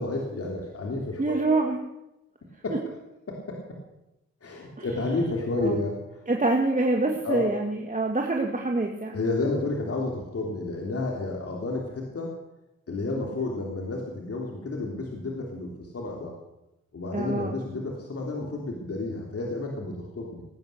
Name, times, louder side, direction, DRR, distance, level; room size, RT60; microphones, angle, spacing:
voice 1, 0.0-1.6 2.6-3.0 3.3-3.8 4.4-6.3 7.2-7.5 9.1-12.4 12.9-16.4 16.9-20.4, left 2 dB, 50° left, 0 dB, 3.1 m, -31 dB
voice 2, 1.2-1.8 4.8-4.9 5.6-5.8 6.3-9.2 17.1-17.5, right 2 dB, 25° right, 2 dB, 2.0 m, -25 dB
18.5 x 9.5 x 6.7 m, 0.91 s
cardioid pair, 65°, 29 cm